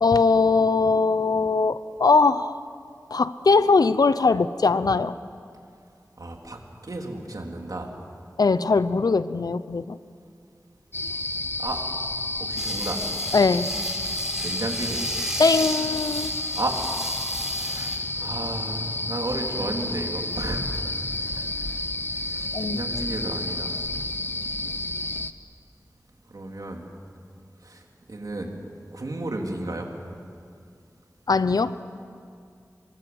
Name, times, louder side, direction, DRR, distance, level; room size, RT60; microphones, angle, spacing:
voice 1, 0.0-2.6 3.1-5.2 8.4-10.0 13.3-13.8 15.4-16.3 22.5-22.8 31.3-31.7, left 4 dB, 90° left, 14 dB, 0.8 m, -21 dB
voice 2, 6.2-7.9 11.6-11.8 12.4-13.0 14.4-15.0 16.6-16.8 17.6-20.9 21.4-23.9 26.3-26.8 27.6-28.5 28.9-29.9, right 2 dB, 70° right, 1 dB, 3.6 m, -33 dB
sound 1, 10.9-25.3, left 2 dB, 35° left, 1.0 m, -30 dB
sound 2, 12.6-18.0, equal, 10° right, 5.1 m, -34 dB
28.0 x 23.0 x 8.0 m, 2.3 s
wide cardioid pair, 45°, 6 cm